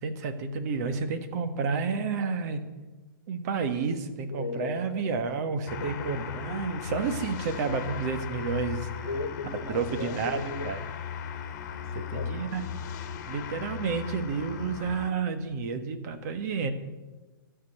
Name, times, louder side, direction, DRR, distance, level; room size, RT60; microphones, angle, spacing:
voice 1, 0.0-2.6 3.3-9.1 9.7-10.8 12.1-12.8 13.3-16.7, right 5 dB, 45° right, 9 dB, 1.6 m, -30 dB
voice 2, 4.3-5.1 5.7-6.3 9.0-10.7 11.7-12.4, left 4 dB, 90° left, 8 dB, 1.3 m, -37 dB
sound 1, 5.7-15.1, left 7 dB, 45° left, 1.4 m, -37 dB
13.0 x 6.3 x 9.2 m, 1.2 s
hypercardioid pair, 130°, 12 cm